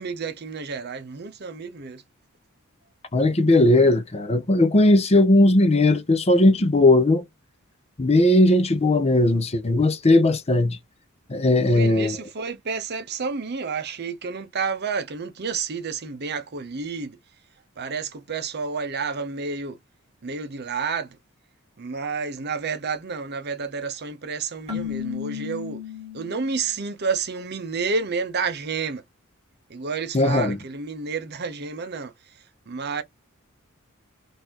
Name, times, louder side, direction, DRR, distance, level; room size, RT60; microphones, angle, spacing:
voice 1, 0.0-2.0 11.5-17.2 17.8-19.8 20.2-21.2 21.8-25.8 26.1-29.0 29.7-32.1 32.7-33.0, right 5 dB, 50° right, 0.7 m, -30 dB
voice 2, 3.1-7.2 8.0-10.8 11.3-12.2 30.1-30.6, left 2 dB, 30° left, 0.6 m, -18 dB
Keyboard (musical), 24.7-26.7, left 9 dB, 30° right, 1.6 m, -33 dB
3.9 x 2.6 x 2.9 m
head